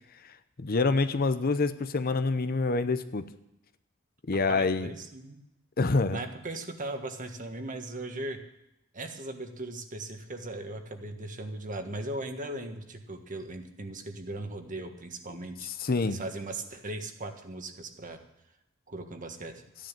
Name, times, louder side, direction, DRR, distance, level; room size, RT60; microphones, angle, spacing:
voice 1, 0.6-3.3 4.3-4.9 5.8-6.2 15.8-16.2, left 3 dB, 45° left, 11 dB, 0.7 m, -26 dB
voice 2, 4.3-5.4 6.1-8.4 8.9-15.7 16.0-18.2 18.9-19.6, right 2 dB, 40° right, 6 dB, 1.5 m, -38 dB
14.5 x 10.5 x 7.5 m, 0.88 s
head